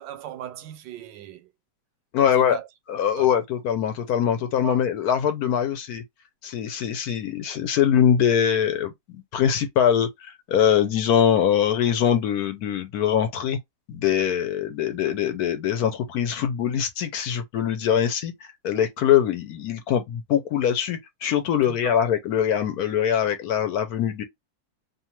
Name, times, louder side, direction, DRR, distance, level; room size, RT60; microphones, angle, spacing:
voice 1, 0.0-1.5 2.2-2.7 3.1-3.4 4.0-4.1 4.6-4.8 21.6-22.0, right 11 dB, 90° right, 1.3 m, -38 dB
voice 2, 2.1-2.6 2.9-6.0 6.4-13.6 13.9-18.3 18.6-24.2, left 9 dB, 70° left, 1.0 m, -23 dB
2.8 x 2.3 x 2.9 m
omnidirectional pair, 1.9 m